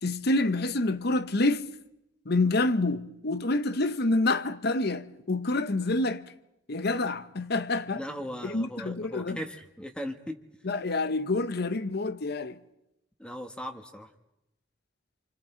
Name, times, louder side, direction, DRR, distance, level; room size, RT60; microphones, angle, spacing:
voice 1, 0.0-1.7 2.3-6.3 6.7-8.0 8.4-9.4 10.6-12.6, left 2 dB, 55° left, 0.9 m, -27 dB
voice 2, 7.9-10.4 13.2-14.1, equal, 5° left, 1.3 m, -38 dB
28.0 x 25.5 x 4.5 m
head